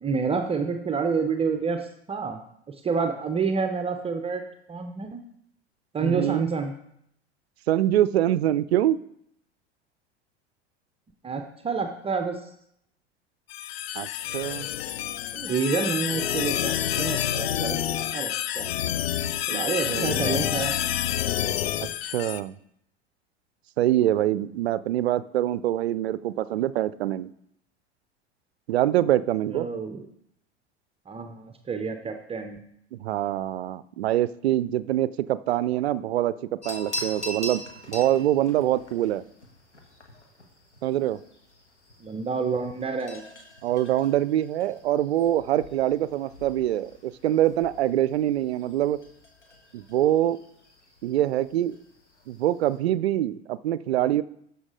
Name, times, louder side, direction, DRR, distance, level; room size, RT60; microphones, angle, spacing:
voice 1, 0.0-2.4 2.7-4.4 4.7-5.2 5.9-6.7 11.2-12.5 15.3-17.8 18.1-18.7 19.5-20.7 29.5-30.1 31.1-32.6 42.0-43.2, right 5 dB, 15° right, 6 dB, 0.7 m, -28 dB
voice 2, 6.0-6.5 7.7-9.0 14.0-14.1 14.3-14.7 19.5-20.2 22.0-22.5 23.8-27.3 28.7-29.7 32.9-37.6 37.9-39.2 40.8-41.2 43.6-49.0 49.7-50.4 51.0-51.8 52.3-54.2, right 12 dB, 65° right, 17 dB, 0.5 m, -24 dB
sound 1, 13.5-22.4, left 11 dB, 60° left, 0.6 m, -28 dB
sound 2, 36.6-52.8, equal, 85° left, 1.5 m, -43 dB
12.0 x 5.7 x 3.8 m, 0.72 s
figure-of-eight pair, 80°, 34 cm